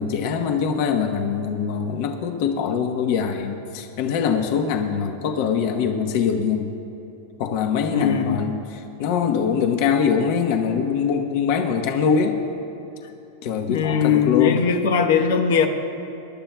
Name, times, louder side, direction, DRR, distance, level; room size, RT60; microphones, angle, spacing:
voice 1, 0.0-6.7 7.4-12.4 13.4-14.6, left 6 dB, 50° left, 4 dB, 1.0 m, -23 dB
voice 2, 7.9-8.4 13.7-15.7, left 7 dB, 80° left, 4 dB, 1.1 m, -20 dB
25.5 x 11.5 x 2.3 m, 2.9 s
supercardioid pair, 150°, 0 cm